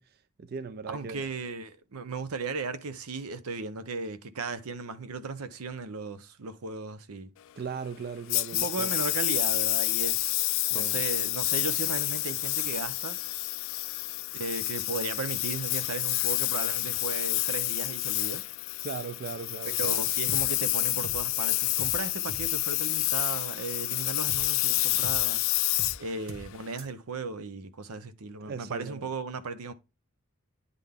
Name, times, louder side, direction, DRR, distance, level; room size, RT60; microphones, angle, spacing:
voice 1, 0.0-1.3 7.6-8.9 10.6-11.0 18.8-19.9 28.4-29.1, right 5 dB, 45° right, 0.4 m, -38 dB
voice 2, 0.9-7.3 8.6-13.2 14.3-18.4 19.8-25.4 26.0-29.7, right 4 dB, 85° right, 0.7 m, -36 dB
Engine, 8.3-26.8, left 20 dB, 65° left, 0.3 m, -29 dB
sound 1, 20.3-20.5 20.8-21.3 21.8-22.0 22.3-22.5 24.3-24.5 24.8-25.3 25.8-26.0 26.3-26.5 26.8-26.9, right 1 dB, 65° right, 1.2 m, -42 dB
9.8 x 3.8 x 3.5 m
head